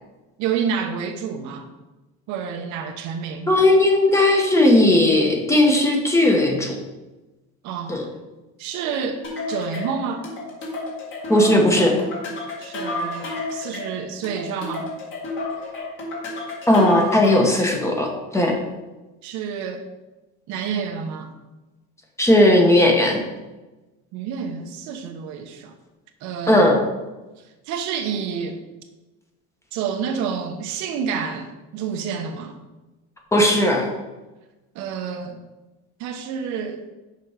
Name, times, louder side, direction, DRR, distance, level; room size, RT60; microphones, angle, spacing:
voice 1, 0.4-1.7 2.3-3.5 7.6-8.0 8.6-10.3 12.6-14.9 19.2-19.8 20.5-21.3 24.1-25.7 26.2-26.8 27.7-28.6 29.7-32.6 34.7-35.4 36.0-36.8, right 6 dB, 65° right, 5 dB, 1.0 m, -29 dB
voice 2, 3.5-6.7 7.9-8.0 11.3-11.9 16.7-18.6 22.2-23.2 26.5-26.8 33.3-33.9, left 1 dB, 10° left, 1 dB, 1.0 m, -17 dB
sound 1, 9.2-17.6, left 2 dB, 40° left, 1.9 m, -31 dB
6.7 x 5.3 x 5.0 m, 1.1 s
cardioid pair, 155°, 31 cm